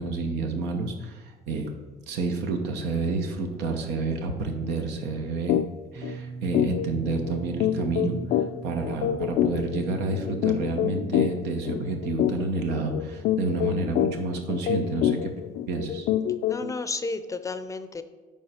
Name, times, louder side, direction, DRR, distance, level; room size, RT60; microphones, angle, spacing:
voice 1, 0.0-1.7 2.1-5.6 5.9-8.2 8.6-15.3 15.7-16.1, right 3 dB, 90° right, 4 dB, 1.0 m, -29 dB
sound 1, 5.5-5.7 6.0-6.2 6.5-16.8, left 11 dB, 70° left, 0.4 m, -27 dB
sound 2, 5.9-11.2, right 4 dB, 35° right, 0.8 m, -40 dB
voice 2, 16.5-18.0, left 3 dB, 20° left, 10 dB, 0.5 m, -32 dB
10.5 x 3.5 x 4.4 m, 1.4 s
cardioid pair, 110°, 17 cm